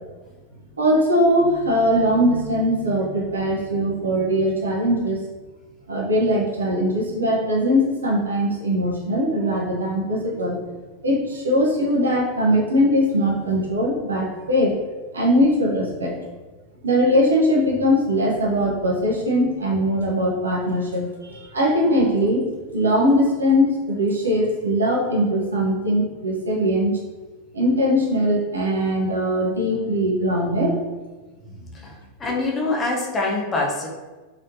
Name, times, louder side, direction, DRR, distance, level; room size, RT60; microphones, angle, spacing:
voice 1, 0.8-5.2 5.9-10.6 11.0-14.8 15.1-16.1 16.8-22.4 22.7-26.9 27.5-30.8, equal, 75° right, -3 dB, 1.0 m, -21 dB
voice 2, 31.7-33.9, left 2 dB, 20° left, -1 dB, 0.8 m, -25 dB
3.9 x 3.7 x 2.7 m, 1.3 s
figure-of-eight pair, 90°, 0 cm